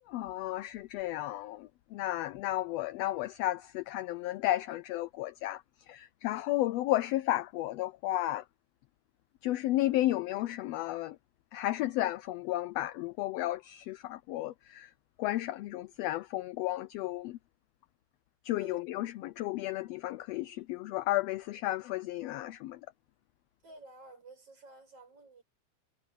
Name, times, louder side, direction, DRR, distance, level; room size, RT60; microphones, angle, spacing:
voice 1, 0.1-8.5 9.4-11.2 11.5-14.9 15.2-17.4 18.4-22.8, left 15 dB, 80° left, 1.4 m, -33 dB
voice 2, 23.6-25.4, right 2 dB, 50° right, 8.2 m, -52 dB
omnidirectional pair, 3.3 m